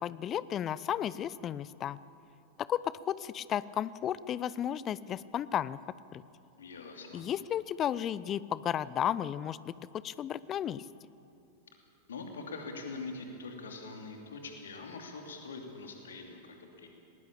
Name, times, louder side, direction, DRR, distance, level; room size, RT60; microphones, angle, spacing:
voice 1, 0.0-2.0 2.6-5.8 6.1-6.2 7.1-9.7 10.0-10.8, left 10 dB, 30° left, 19 dB, 0.5 m, -33 dB
voice 2, 6.6-7.2 12.1-16.9, left 3 dB, 65° left, 3 dB, 2.9 m, -43 dB
19.0 x 19.0 x 8.6 m, 2.9 s
figure-of-eight pair, 90°, 0 cm